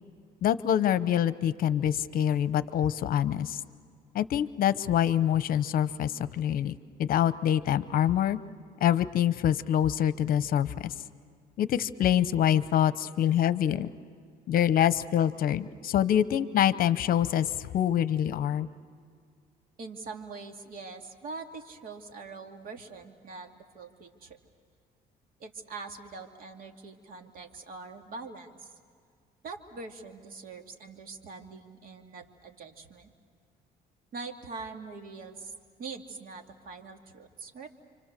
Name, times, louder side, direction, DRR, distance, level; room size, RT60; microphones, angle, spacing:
voice 1, 0.4-3.6 4.1-8.4 8.8-10.9 11.6-13.9 14.5-18.7, left 10 dB, 60° left, 14 dB, 0.9 m, -25 dB
voice 2, 19.8-24.4 25.4-28.7 29.4-33.1 34.1-35.5 35.8-37.7, right 4 dB, 55° right, 4 dB, 2.5 m, -43 dB
29.0 x 25.5 x 6.8 m, 2.1 s
cardioid pair, 110°, 17 cm